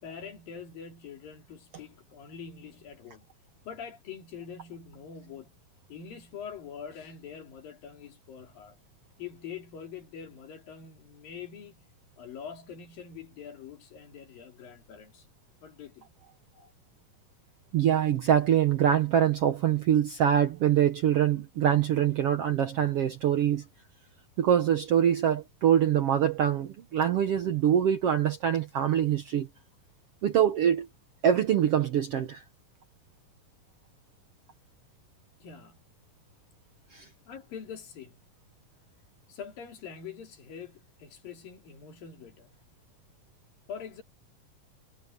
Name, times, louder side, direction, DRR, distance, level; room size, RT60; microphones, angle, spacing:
voice 1, 0.0-3.3 3.6-5.6 5.9-8.8 9.2-11.8 12.2-15.3 15.6-16.1 16.5-16.7 35.4-35.9 37.3-38.2 39.3-42.5 43.7-44.0, left 7 dB, 85° left, 4.7 m, -44 dB
voice 2, 17.7-23.6 24.4-29.5 30.2-30.9 31.2-32.4 36.9-37.1, right 9 dB, 70° right, 1.5 m, -24 dB
omnidirectional pair, 3.9 m